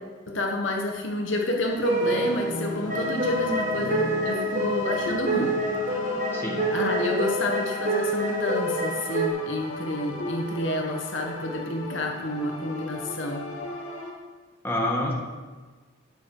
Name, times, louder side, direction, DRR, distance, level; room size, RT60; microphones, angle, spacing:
voice 1, 0.3-5.6 6.7-13.5, left 1 dB, 60° left, 2 dB, 1.5 m, -29 dB
sound 1, 1.6-9.3, right 1 dB, 35° right, 1.9 m, -27 dB
sound 2, 2.0-14.1, left 2 dB, 75° left, 2.2 m, -36 dB
voice 2, 6.3-6.7 14.6-15.1, left 1 dB, 10° left, -2 dB, 1.6 m, -27 dB
12.0 x 9.2 x 4.9 m, 1.3 s
head